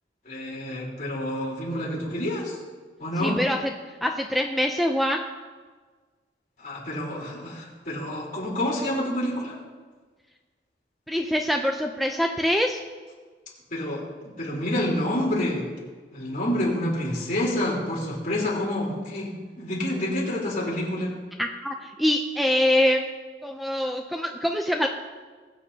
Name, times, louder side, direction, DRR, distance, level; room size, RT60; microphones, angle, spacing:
voice 1, 0.2-2.6 3.0-3.4 6.6-9.6 13.7-15.7 16.1-19.3 19.6-21.1, left 1 dB, 50° left, -5 dB, 3.7 m, -28 dB
voice 2, 3.2-3.6 4.0-5.2 11.1-12.8 21.4-23.1 23.4-24.9, left 1 dB, ahead, 3 dB, 0.5 m, -24 dB
21.0 x 8.1 x 2.8 m, 1.4 s
head